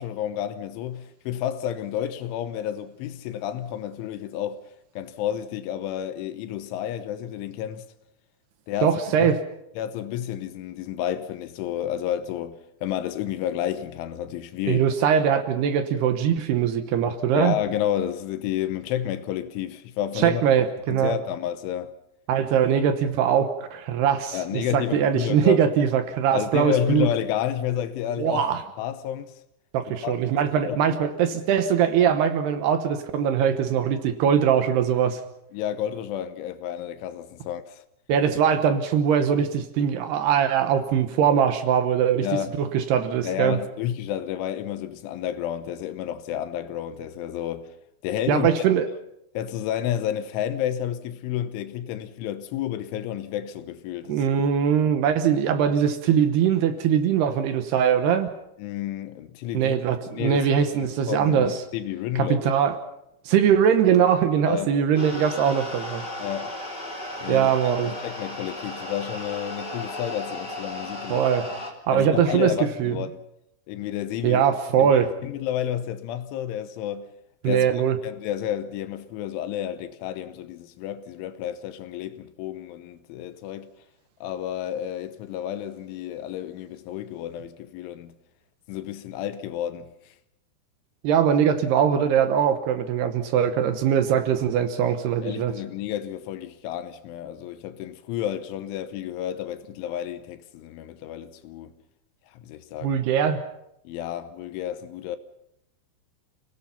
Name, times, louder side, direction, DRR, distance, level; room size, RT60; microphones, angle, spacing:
voice 1, 0.0-4.6 5.0-7.9 8.7-9.3 9.8-14.9 17.3-21.9 24.3-25.6 26.3-28.4 28.8-29.3 30.0-30.1 30.6-30.8 35.5-37.8 38.5-38.6 42.2-42.5 43.2-47.7 48.0-48.5 49.3-54.2 58.6-59.8 60.0-62.5 64.5-64.8 66.2-66.5 67.2-67.6 67.8-71.2 71.9-73.2 73.7-74.4 74.8-77.1 77.4-77.6 78.0-83.7 84.2-88.1 88.7-90.1 95.2-101.7 102.3-103.0 103.8-105.2, left 11 dB, 75° left, 3.2 m, -30 dB
voice 2, 8.8-9.4 14.7-17.6 20.2-21.2 22.3-27.1 28.2-28.6 29.7-35.2 38.1-42.3 42.6-43.6 48.3-48.9 54.1-58.3 59.5-61.6 62.2-62.8 63.3-66.0 67.3-67.9 71.1-71.5 71.9-73.0 74.2-75.1 77.4-78.0 91.0-95.5 102.8-103.4, right 8 dB, 70° right, 2.6 m, -21 dB
sound 1, 64.9-71.7, left 1 dB, 15° left, 1.9 m, -35 dB
29.0 x 18.5 x 5.8 m
omnidirectional pair, 5.9 m